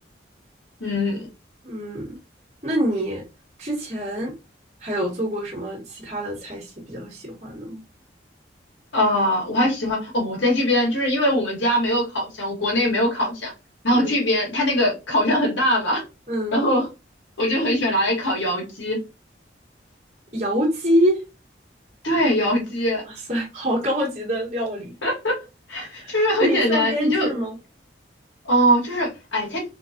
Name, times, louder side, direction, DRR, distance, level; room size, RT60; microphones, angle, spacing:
voice 1, 0.8-1.3 8.9-13.5 13.8-16.0 16.5-16.9 17.4-19.0 22.0-23.0 25.0-25.4 25.7-27.3 28.5-29.6, equal, 80° left, 2.0 m, -22 dB
voice 2, 1.6-2.2 2.6-3.2 3.6-4.3 4.8-7.8 13.9-14.1 16.3-16.6 20.3-21.2 23.1-24.9 26.0-26.1 26.4-27.6, equal, 40° right, 1.6 m, -25 dB
4.0 x 3.2 x 2.8 m
head